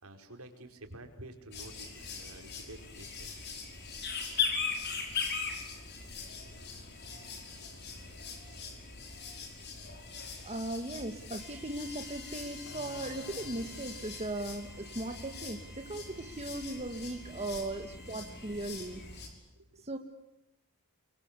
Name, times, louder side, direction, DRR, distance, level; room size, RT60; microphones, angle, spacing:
voice 1, 0.0-3.3 19.5-19.9, right 1 dB, 75° right, 5 dB, 5.1 m, -50 dB
sound 1, 1.5-19.3, left 5 dB, 50° left, 5.6 m, -40 dB
voice 2, 10.4-19.0 19.8-20.0, right 2 dB, 30° right, 5 dB, 1.9 m, -38 dB
sound 2, 11.4-19.1, right 3 dB, 5° right, 4.3 m, -57 dB
sound 3, 12.7-16.2, left 1 dB, 75° left, 3.2 m, -53 dB
29.5 x 23.5 x 8.4 m, 0.91 s
head